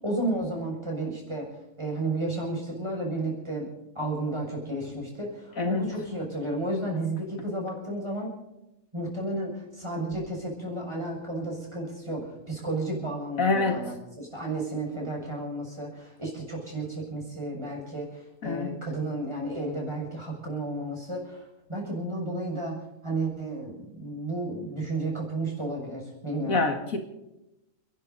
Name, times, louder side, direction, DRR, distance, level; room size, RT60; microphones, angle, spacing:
voice 1, 0.0-1.5 1.8-3.7 3.9-8.3 8.9-26.6, right 2 dB, 20° right, -1 dB, 6.7 m, -32 dB
voice 2, 13.4-13.8 18.4-18.7 26.5-27.0, left 3 dB, 75° left, 5 dB, 2.4 m, -26 dB
30.0 x 11.5 x 4.1 m, 0.91 s
omnidirectional pair, 1.5 m